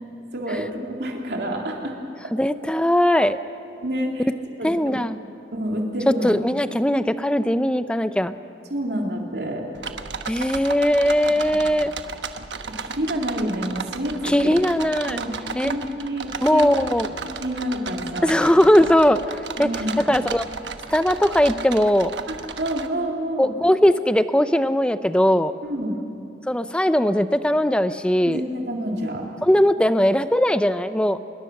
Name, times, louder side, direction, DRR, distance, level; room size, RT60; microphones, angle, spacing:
voice 1, 0.3-2.0 3.8-4.3 4.6-4.9 5.5-6.3 8.7-9.7 11.3-11.8 12.7-14.5 15.1-15.3 15.6-16.7 17.2-18.5 19.6-20.2 22.3-23.5 25.6-26.0 28.2-29.3, equal, 65° right, 0 dB, 3.4 m, -28 dB
voice 2, 2.3-3.4 4.6-5.2 6.2-8.3 10.3-11.9 14.2-15.2 15.5-15.7 16.4-17.1 18.2-19.2 19.6-19.7 20.1-20.4 20.9-22.1 23.4-25.5 26.5-28.4 29.4-31.2, equal, 5° left, 11 dB, 0.6 m, -19 dB
sound 1, 9.7-22.9, right 5 dB, 90° right, 1.2 m, -34 dB
25.5 x 22.0 x 6.6 m, 2.8 s
head